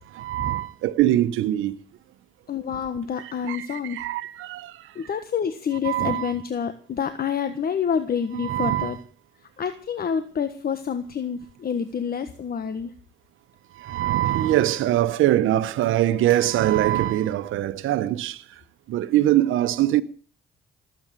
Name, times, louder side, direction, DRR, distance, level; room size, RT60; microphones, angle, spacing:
voice 1, 0.1-1.8 3.2-4.9 5.8-6.3 8.3-9.0 13.7-18.4 18.9-20.0, right 13 dB, 85° right, 1.1 m, -23 dB
voice 2, 2.5-4.0 4.9-9.0 9.6-12.9, left 7 dB, 50° left, 1.4 m, -28 dB
19.0 x 8.9 x 7.6 m
cardioid pair, 90°, 20 cm